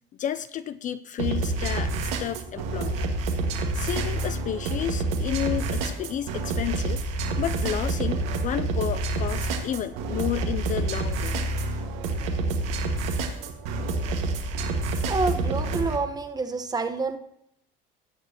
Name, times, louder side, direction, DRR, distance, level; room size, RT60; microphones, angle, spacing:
voice 1, 0.2-2.9 3.7-7.0 7.4-11.4, left 10 dB, 40° left, 13 dB, 0.4 m, -31 dB
sound 1, 1.2-16.0, right 2 dB, 90° right, 1.6 m, -28 dB
voice 2, 15.1-17.2, right 4 dB, 20° right, 8 dB, 1.0 m, -28 dB
17.5 x 6.8 x 2.8 m, 0.73 s
cardioid pair, 110°, 20 cm